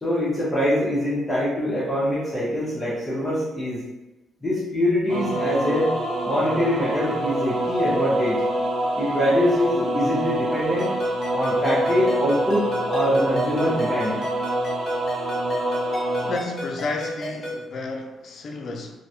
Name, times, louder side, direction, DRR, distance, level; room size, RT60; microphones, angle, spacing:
voice 1, 0.0-3.8 4.4-5.9 6.2-8.4 9.0-10.9 11.3-14.2, left 1 dB, 15° left, -8 dB, 0.7 m, -23 dB
sound 1, 5.1-16.4, right 1 dB, 70° right, 0.4 m, -26 dB
Ringtone, 10.8-17.6, equal, 40° left, 1.0 m, -33 dB
voice 2, 16.2-19.0, left 3 dB, 55° left, 3 dB, 0.4 m, -32 dB
2.2 x 2.0 x 2.7 m, 1.0 s
cardioid pair, 90°, 0 cm